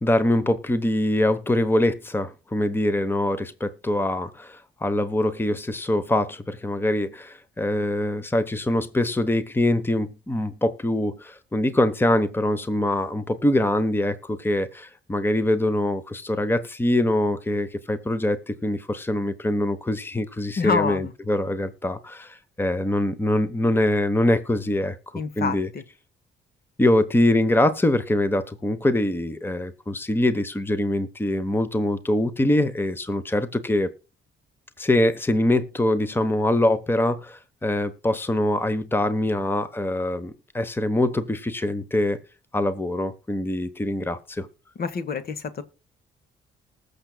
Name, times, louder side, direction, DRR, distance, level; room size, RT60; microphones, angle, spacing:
voice 1, 0.0-25.0 25.4-25.7 26.8-33.9 34.8-42.2 42.5-44.5, left 1 dB, 10° left, 0.9 m, -23 dB
voice 2, 20.6-21.1 25.1-25.8 44.7-45.6, left 5 dB, 50° left, 1.4 m, -27 dB
19.5 x 6.7 x 2.2 m
cardioid pair, 90°, 20 cm